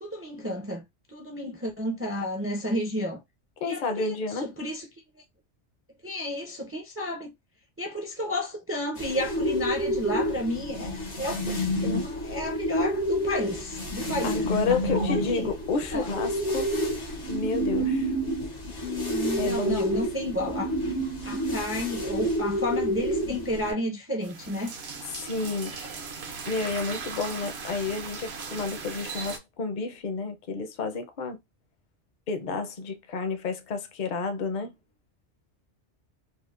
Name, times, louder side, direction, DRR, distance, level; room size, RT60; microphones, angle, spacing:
voice 1, 0.0-3.2 3.6-4.9 6.0-7.3 7.8-15.5 15.9-16.0 17.1-17.2 18.6-20.8 21.2-24.7, left 1 dB, 20° right, 0.4 m, -32 dB
voice 2, 3.6-4.5 14.2-16.7 17.3-18.1 19.4-20.0 25.2-25.8 26.5-31.4 32.3-34.7, left 4 dB, 50° left, 0.6 m, -30 dB
sound 1, 9.0-23.7, equal, 90° left, 1.5 m, -29 dB
sound 2, 24.2-29.4, right 5 dB, 65° right, 0.9 m, -38 dB
4.3 x 2.0 x 2.4 m
omnidirectional pair, 1.2 m